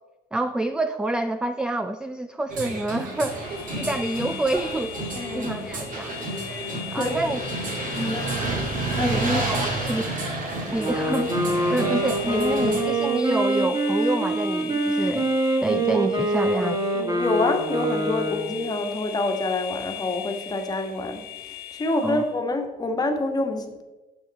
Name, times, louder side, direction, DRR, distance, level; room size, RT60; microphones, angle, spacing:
voice 1, 0.3-5.0 5.3-6.1 6.9-7.4 8.0-8.2 8.9-10.1 10.7-11.3 11.7-15.3 15.6-16.8 22.0-22.2, right 2 dB, 5° right, 10 dB, 0.4 m, -27 dB
sound 1, 2.5-12.8, right 2 dB, 50° right, 2.4 m, -30 dB
sound 2, 3.1-22.4, left 11 dB, 65° left, 0.7 m, -39 dB
voice 2, 5.1-5.9 6.9-7.2 8.1-8.3 9.0-9.4 17.0-21.2 21.7-23.8, left 2 dB, 25° left, 3 dB, 1.5 m, -27 dB
Wind instrument woodwind instrument, 10.7-18.6, right 1 dB, 20° right, 1.7 m, -25 dB
9.8 x 7.6 x 4.2 m, 1.1 s
cardioid pair, 110°, 17 cm